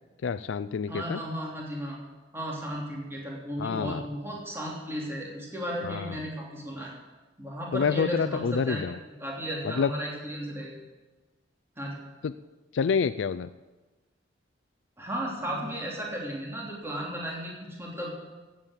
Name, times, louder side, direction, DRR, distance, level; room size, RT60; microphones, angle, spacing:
voice 1, 0.2-1.2 3.6-4.0 5.8-6.1 7.7-9.0 9.6-9.9 12.2-12.3 12.7-13.5, left 6 dB, 80° left, 14 dB, 0.4 m, -27 dB
voice 2, 0.9-2.0 2.3-6.9 7.4-10.7 11.8-11.9 15.0-18.2, equal, 15° right, -3 dB, 3.1 m, -35 dB
14.5 x 8.9 x 7.4 m, 1.2 s
head